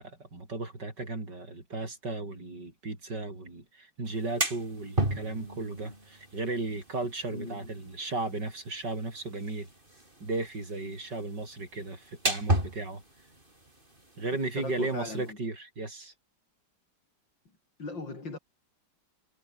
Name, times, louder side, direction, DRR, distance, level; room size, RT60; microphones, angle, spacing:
voice 1, 0.0-9.7 10.2-13.0 14.2-16.1, right 2 dB, 65° right, 6.4 m, -35 dB
sound 1, 4.1-15.3, right 1 dB, 25° right, 6.1 m, -36 dB
voice 2, 7.3-7.8 14.6-15.4 17.5-18.4, left 3 dB, 80° left, 6.0 m, -39 dB
omnidirectional pair, 2.0 m